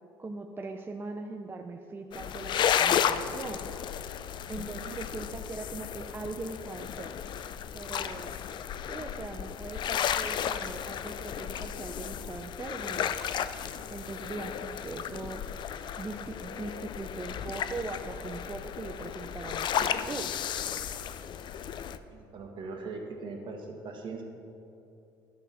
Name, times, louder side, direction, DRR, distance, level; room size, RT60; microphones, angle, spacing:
voice 1, 0.2-3.7 4.5-7.2 7.7-8.4 8.9-13.1 13.9-15.4 16.0-20.3, right 3 dB, 20° right, 4 dB, 0.5 m, -40 dB
sound 1, 2.1-22.0, left 9 dB, 45° left, 0.4 m, -33 dB
voice 2, 22.1-24.2, right 3 dB, 50° right, 2 dB, 1.5 m, -40 dB
10.5 x 5.8 x 5.9 m, 2.7 s
supercardioid pair, 85°, 10 cm